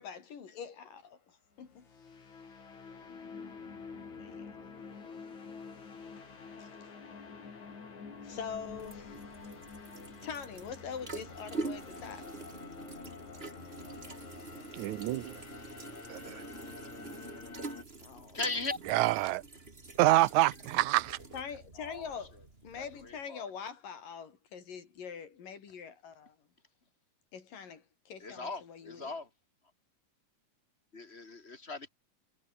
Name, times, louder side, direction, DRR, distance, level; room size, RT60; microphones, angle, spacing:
voice 1, 0.0-1.9 4.2-4.6 6.2-6.3 6.6-6.7 8.2-9.2 10.2-12.3 14.6-14.9 18.0-18.4 21.3-22.4 22.6-26.4 27.3-29.1, left 7 dB, 85° left, 5.1 m, -44 dB
sound 1, 1.6-17.8, left 5 dB, 60° left, 5.9 m, -48 dB
sound 2, 8.2-23.2, right 3 dB, 20° right, 2.5 m, -46 dB
voice 2, 14.7-15.4 16.1-16.4 18.9-19.4 20.0-21.2, right 16 dB, 75° right, 1.9 m, -27 dB
voice 3, 18.3-18.8 21.8-22.1 22.8-23.5 28.2-29.3 30.9-31.9, left 3 dB, 25° left, 1.8 m, -39 dB
omnidirectional pair, 3.8 m